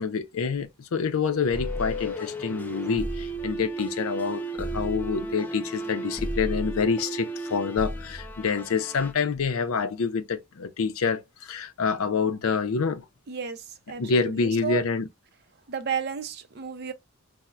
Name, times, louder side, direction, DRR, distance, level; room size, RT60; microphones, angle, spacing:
voice 1, 0.0-13.0 14.0-15.1, left 5 dB, 80° left, 0.5 m, -27 dB
sound 1, 1.2-8.6, right 3 dB, 35° left, 0.9 m, -35 dB
sound 2, 1.5-9.1, left 1 dB, 10° left, 0.4 m, -37 dB
voice 2, 13.3-14.8 15.7-16.9, right 6 dB, 45° right, 0.5 m, -32 dB
4.2 x 2.1 x 2.3 m
head